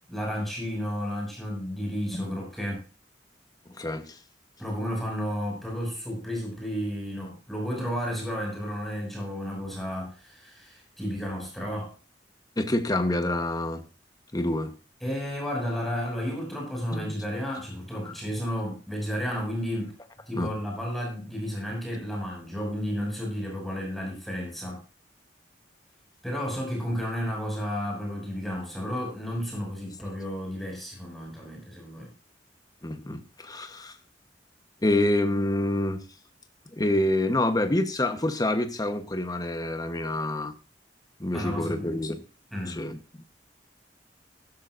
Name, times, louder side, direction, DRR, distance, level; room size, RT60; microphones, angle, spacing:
voice 1, 0.1-2.8 4.6-11.9 15.0-20.0 20.3-24.8 26.2-32.1 41.3-42.0 42.5-42.8, equal, ahead, -1 dB, 6.1 m, -32 dB
voice 2, 12.6-13.8 14.3-14.7 16.9-17.1 20.3-20.5 32.8-33.9 34.8-36.0 36.7-40.5 41.2-42.2 42.7-43.0, left 1 dB, 20° left, 8 dB, 1.1 m, -27 dB
15.0 x 13.0 x 2.6 m, 0.30 s
head